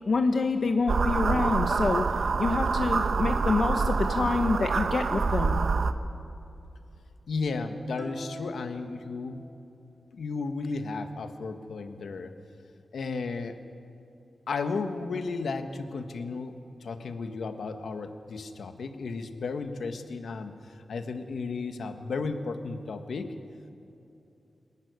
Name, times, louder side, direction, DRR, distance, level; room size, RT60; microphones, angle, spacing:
voice 1, 0.0-2.0 2.4-5.6, left 3 dB, 50° left, 6 dB, 1.0 m, -27 dB
sound 1, 0.9-5.9, right 4 dB, 65° right, 0.9 m, -26 dB
voice 2, 7.3-9.4 10.1-12.3 12.9-13.6 14.5-20.5 20.9-23.3, left 4 dB, 80° left, 7 dB, 1.5 m, -34 dB
sound 2, 8.0-9.8, equal, 5° right, 2.5 m, -45 dB
26.5 x 12.0 x 9.5 m, 2.8 s
wide cardioid pair, 165°, 0 cm